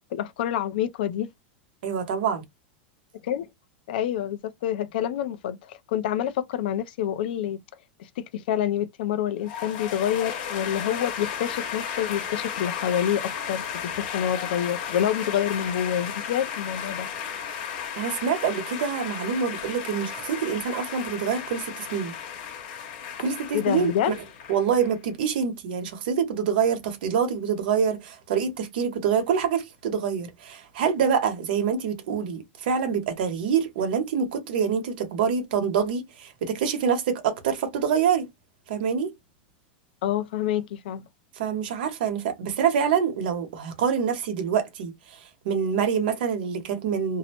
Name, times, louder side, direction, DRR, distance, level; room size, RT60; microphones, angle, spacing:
voice 1, 0.1-1.3 3.2-3.5 3.9-7.6 8.2-17.1 23.5-24.1 40.0-41.0, left 10 dB, 65° left, 0.5 m, -27 dB
voice 2, 1.8-2.4 17.9-22.1 23.2-24.1 24.5-38.3 38.7-39.1 41.4-47.2, right 7 dB, 65° right, 1.0 m, -26 dB
sound 1, 9.4-25.0, left 8 dB, 50° left, 1.1 m, -34 dB
2.6 x 2.1 x 2.8 m
supercardioid pair, 160°, 6 cm